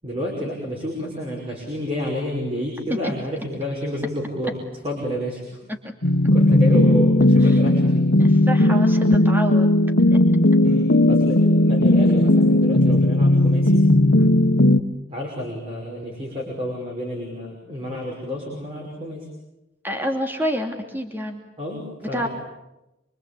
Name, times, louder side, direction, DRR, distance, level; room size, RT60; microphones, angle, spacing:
voice 1, 0.0-5.6 6.3-8.2 10.6-13.8 15.1-19.3 21.6-22.3, equal, 30° right, -2 dB, 5.8 m, -30 dB
sound 1, 6.0-14.8, left 1 dB, 75° left, 1.4 m, -16 dB
voice 2, 8.2-9.7 10.1-10.2 14.2-14.4 19.8-21.4 22.1-22.3, equal, 10° right, 4 dB, 2.7 m, -27 dB
26.0 x 25.5 x 8.6 m, 0.94 s
head